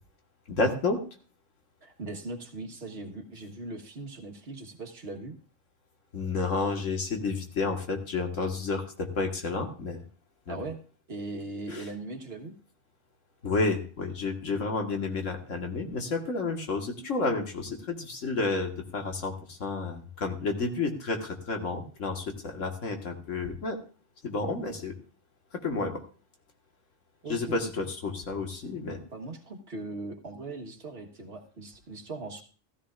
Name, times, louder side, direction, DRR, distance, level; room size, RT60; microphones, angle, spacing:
voice 1, 0.5-1.0 6.1-10.0 10.5-10.6 11.7-11.8 13.4-23.8 24.2-24.9 25.6-26.0 27.3-29.0, left 3 dB, 75° left, 3 dB, 1.9 m, -30 dB
voice 2, 1.8-5.4 10.5-10.8 11.1-12.6 27.2-27.9 29.1-32.4, right 2 dB, 55° right, 3 dB, 1.6 m, -39 dB
14.5 x 13.5 x 2.5 m, 0.39 s
omnidirectional pair, 1.3 m